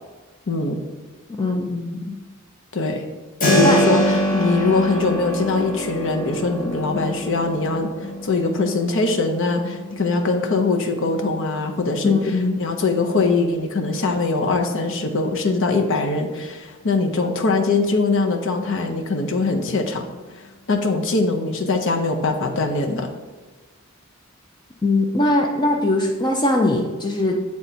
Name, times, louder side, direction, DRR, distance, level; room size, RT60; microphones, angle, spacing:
voice 1, 0.5-0.8 2.7-3.0 3.4-7.9 8.2-12.2 12.6-20.0 20.7-23.1, left 3 dB, 65° left, 4 dB, 0.7 m, -22 dB
voice 2, 1.4-2.1 3.6-3.8 12.0-12.6 24.8-27.4, left 2 dB, 20° left, 2 dB, 0.5 m, -20 dB
Keyboard (musical), 3.4-14.1, equal, 40° left, 1.1 m, -26 dB
7.8 x 3.5 x 4.2 m, 1.3 s
head